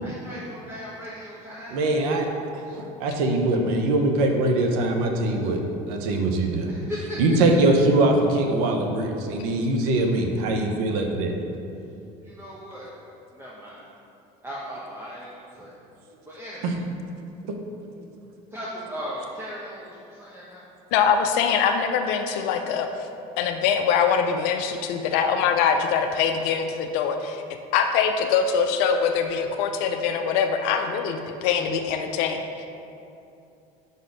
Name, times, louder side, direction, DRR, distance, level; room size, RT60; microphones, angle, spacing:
voice 1, 0.0-2.2 6.7-7.4 12.2-12.9 13.3-13.9 14.4-15.7 16.3-16.8 18.5-20.7, equal, 10° right, -7 dB, 0.9 m, -37 dB
voice 2, 1.7-2.3 2.7-5.6 5.9-6.7 7.2-11.3 16.6-16.7, right 2 dB, 85° right, 3 dB, 0.7 m, -22 dB
voice 3, 20.9-22.9 23.4-27.4 27.7-32.6, left 6 dB, 75° left, 5 dB, 0.5 m, -23 dB
5.4 x 4.1 x 4.9 m, 2.7 s
supercardioid pair, 90°, 18 cm